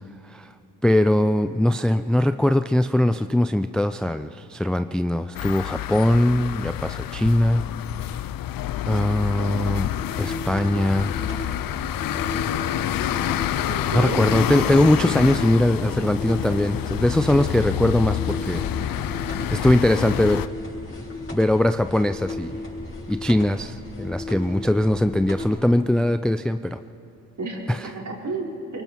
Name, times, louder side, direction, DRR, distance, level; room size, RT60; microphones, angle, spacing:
voice 1, 0.8-7.6 8.9-9.9 10.2-11.1 13.9-18.6 19.5-20.5 21.3-22.5 23.1-26.8 27.7-27.8, left 1 dB, ahead, 10 dB, 0.4 m, -21 dB
sound 1, 5.3-20.5, left 13 dB, 55° left, 0.6 m, -28 dB
sound 2, 9.5-25.5, left 2 dB, 30° left, 6.4 m, -34 dB
voice 2, 13.6-14.2 17.8-17.9 27.4-28.8, right 2 dB, 45° right, -2 dB, 4.8 m, -31 dB
24.0 x 23.5 x 4.6 m, 2.8 s
cardioid pair, 75°, 40 cm